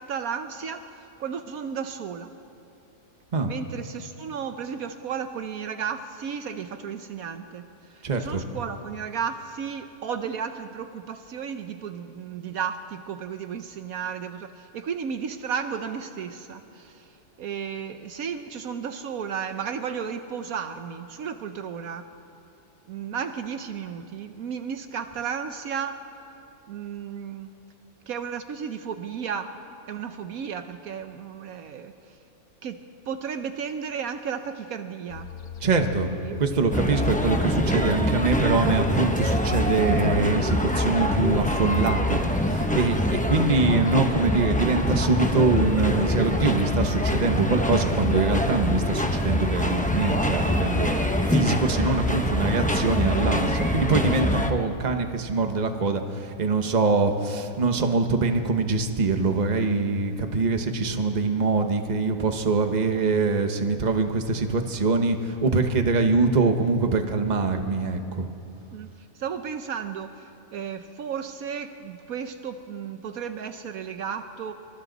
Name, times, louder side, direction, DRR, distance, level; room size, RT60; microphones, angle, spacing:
voice 1, 0.0-2.3 3.4-17.1 17.4-22.1 22.9-26.0 26.7-27.6 28.1-29.6 29.9-32.2 32.6-35.3 36.2-37.5 68.7-68.9 69.2-74.5, right 7 dB, 75° right, 8 dB, 1.2 m, -34 dB
voice 2, 8.0-8.4 35.6-36.1 36.4-68.3, right 3 dB, 30° right, 5 dB, 1.2 m, -24 dB
sound 1, 35.1-40.6, left 7 dB, 80° left, 1.7 m, -43 dB
sound 2, 36.7-54.5, left 1 dB, 5° left, 0.9 m, -24 dB
27.5 x 25.0 x 4.1 m, 2.7 s
omnidirectional pair, 1.5 m